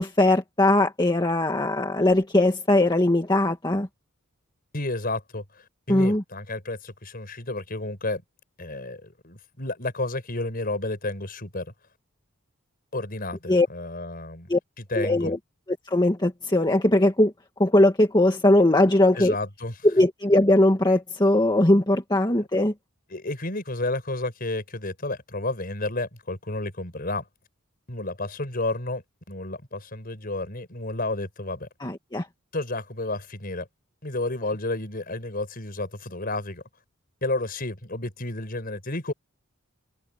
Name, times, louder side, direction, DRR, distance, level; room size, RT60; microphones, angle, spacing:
voice 1, 0.0-3.9 5.9-6.2 13.5-13.7 14.5-14.6 14.9-15.4 15.9-17.3 17.6-19.4 19.8-22.7 31.8-32.3, left 1 dB, 20° left, 1.7 m, -20 dB
voice 2, 4.7-8.2 8.6-11.7 12.9-14.5 14.9-15.3 19.2-19.7 23.1-27.2 27.9-29.0 29.3-31.7 32.5-33.7 34.0-36.6 37.2-39.1, left 2 dB, 45° left, 5.3 m, -31 dB
head